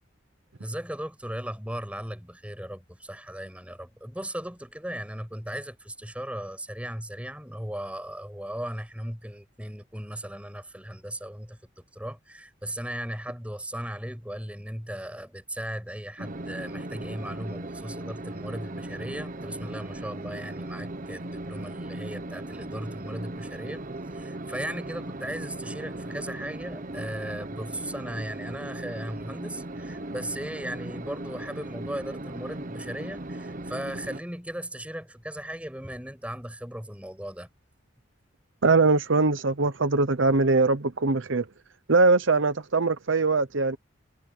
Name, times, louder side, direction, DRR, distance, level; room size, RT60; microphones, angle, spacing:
voice 1, 0.6-11.6 11.9-23.8 24.1-37.5, right 1 dB, 5° right, 7.1 m, -37 dB
sound 1, 16.2-34.2, right 1 dB, 40° right, 1.0 m, -38 dB
voice 2, 38.6-41.5 41.9-43.8, right 3 dB, 70° right, 0.9 m, -22 dB
head